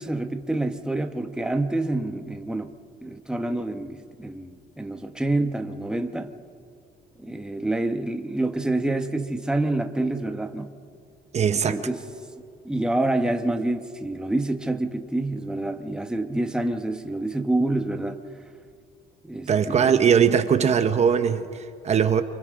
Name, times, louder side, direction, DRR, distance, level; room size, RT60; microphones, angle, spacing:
voice 1, 0.0-2.7 3.0-6.3 7.2-10.7 11.7-12.0 12.6-18.2 19.2-19.9, right 2 dB, 5° right, 5 dB, 1.1 m, -27 dB
voice 2, 11.3-11.8 19.5-22.2, right 7 dB, 40° right, 9 dB, 0.9 m, -20 dB
29.0 x 25.0 x 3.7 m, 2.4 s
cardioid pair, 110°, 17 cm